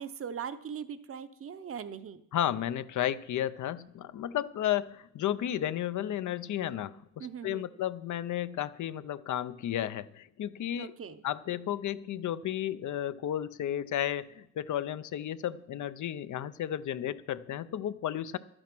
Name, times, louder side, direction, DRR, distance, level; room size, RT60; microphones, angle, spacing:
voice 1, 0.0-2.2 7.2-7.7 10.8-11.2, right 7 dB, 50° right, 12 dB, 0.6 m, -40 dB
voice 2, 2.3-10.9 11.2-18.4, left 11 dB, 80° left, 15 dB, 0.5 m, -33 dB
11.5 x 8.9 x 6.0 m, 0.78 s
wide cardioid pair, 145°, 30 cm